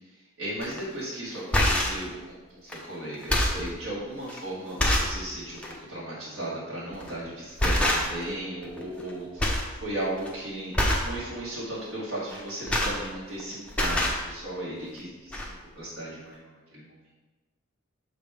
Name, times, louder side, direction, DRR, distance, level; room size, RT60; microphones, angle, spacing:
voice 1, 0.4-16.9, right 1 dB, 75° right, -8 dB, 1.9 m, -36 dB
sound 1, 0.6-0.8 1.3-2.0 2.7-2.8 3.1-3.7 4.3-4.4 4.8-5.2 5.6-5.8 6.9-7.2 7.6-8.3 8.6-9.1 9.4-9.7 10.0-10.3 10.7-11.1 12.3-13.4 13.7-14.2 15.0-15.1 15.3-15.5, left 1 dB, 5° left, 0.7 m, -25 dB
6.5 x 3.5 x 5.0 m, 1.2 s
head